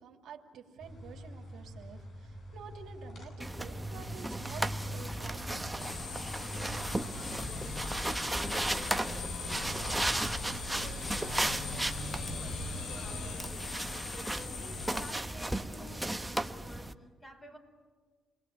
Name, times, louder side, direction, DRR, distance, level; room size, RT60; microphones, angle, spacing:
voice 1, 0.0-6.1, right 7 dB, 75° right, 2 dB, 2.6 m, -50 dB
sound 1, 0.8-13.4, left 1 dB, 55° left, 6.7 m, -43 dB
sound 2, 3.4-16.9, right 1 dB, 10° right, 1.1 m, -35 dB
sound 3, 5.8-15.1, left 6 dB, 85° left, 1.9 m, -43 dB
voice 2, 6.5-13.8 14.1-17.6, left 1 dB, 20° left, 3 dB, 5.4 m, -51 dB
28.5 x 20.5 x 8.8 m, 1.5 s
cardioid pair, 90°, 0 cm